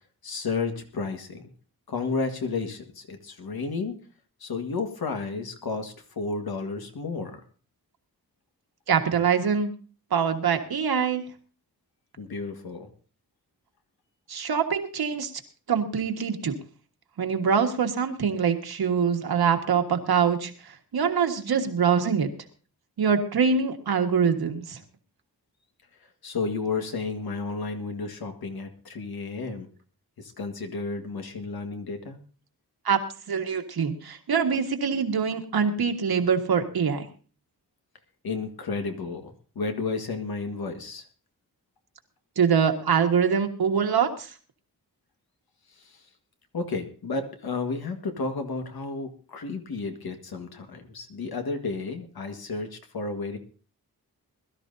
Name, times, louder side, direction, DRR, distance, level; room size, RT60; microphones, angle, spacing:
voice 1, 0.2-1.4 1.9-4.0 4.4-7.4 12.2-12.9 26.2-29.7 30.2-32.2 38.2-41.0 46.5-53.4, left 4 dB, 75° left, 5 dB, 1.8 m, -32 dB
voice 2, 8.9-9.7 10.1-11.2 14.3-15.3 15.7-16.5 17.2-20.5 20.9-22.3 23.0-24.8 32.8-33.0 33.3-37.0 42.4-44.3, right 6 dB, 80° right, 5 dB, 1.7 m, -24 dB
21.5 x 13.0 x 2.7 m, 0.39 s
wide cardioid pair, 145°, 37 cm